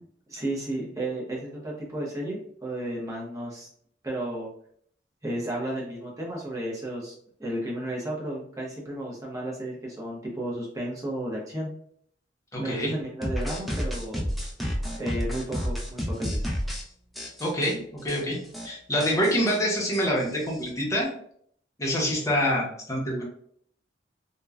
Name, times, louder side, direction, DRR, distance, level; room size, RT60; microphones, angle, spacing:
voice 1, 0.3-3.7 4.0-4.5 5.2-7.1 7.4-11.7 12.6-14.3 15.0-16.5, right 1 dB, 20° right, -4 dB, 0.8 m, -33 dB
voice 2, 12.5-13.0 17.4-18.4 18.6-21.1 21.8-23.2, equal, 20° left, -3 dB, 0.7 m, -26 dB
sound 1, 13.2-16.8 17.2-17.7 18.1-18.2 18.4-18.7 19.0-20.7, equal, ahead, 0.4 m, -31 dB
2.9 x 2.2 x 2.3 m, 0.63 s
head